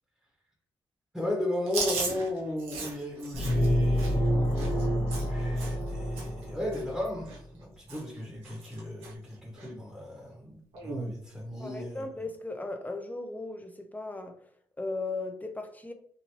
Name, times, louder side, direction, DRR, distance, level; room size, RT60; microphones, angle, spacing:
voice 1, 1.1-12.0, left 1 dB, ahead, 1.2 m, -35 dB
Chewing mastication, 1.7-5.9 6.2-6.4 6.7-7.6 7.9-8.2 8.4-9.1 9.6-9.7 10.7-11.1, right 4 dB, 85° right, 0.9 m, -37 dB
sound 1, 3.3-7.1, equal, 45° left, 1.2 m, -28 dB
voice 2, 11.6-14.4 14.8-15.9, left 3 dB, 15° left, 0.7 m, -37 dB
3.0 x 2.7 x 2.9 m
supercardioid pair, 50°, 10 cm